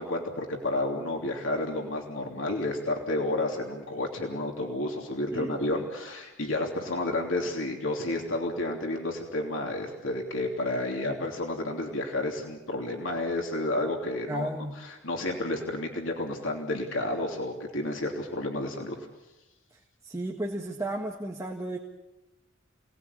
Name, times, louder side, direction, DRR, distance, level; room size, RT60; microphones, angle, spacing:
voice 1, 0.0-14.5 14.8-19.0, left 2 dB, 85° left, 1 dB, 3.1 m, -31 dB
voice 2, 14.3-14.7 20.0-21.8, right 1 dB, 15° right, 1 dB, 1.7 m, -33 dB
27.0 x 19.0 x 8.6 m, 1.0 s
head